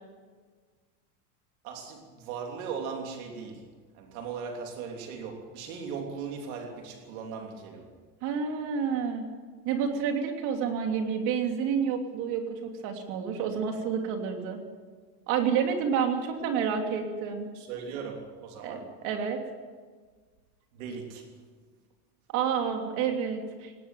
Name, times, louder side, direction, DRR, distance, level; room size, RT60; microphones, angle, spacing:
voice 1, 1.6-3.7 3.9-7.9 17.5-18.9 20.7-21.3, right 5 dB, 60° right, 2 dB, 3.2 m, -38 dB
voice 2, 8.2-9.2 9.6-14.6 15.3-17.5 18.6-19.4 22.3-23.8, right 7 dB, 35° right, 4 dB, 3.1 m, -29 dB
18.5 x 17.5 x 9.1 m, 1.5 s
supercardioid pair, 180°, 49 cm